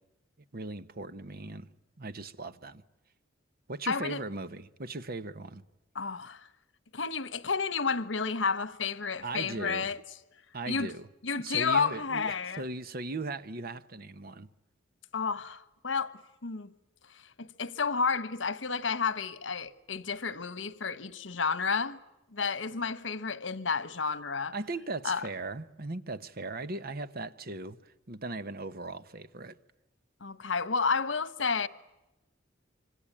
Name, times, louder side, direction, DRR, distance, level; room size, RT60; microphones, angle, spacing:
voice 1, 0.5-1.7 2.0-2.8 3.7-5.6 9.2-9.9 10.5-11.1 11.3-14.5 24.5-29.6, right 2 dB, 55° right, 1.2 m, -38 dB
voice 2, 3.9-4.2 5.9-6.5 6.9-10.0 10.7-10.9 11.2-12.6 15.1-16.7 17.1-22.0 22.3-24.5 25.0-25.2 30.2-31.7, left 5 dB, 85° left, 1.3 m, -31 dB
26.0 x 25.5 x 8.9 m
head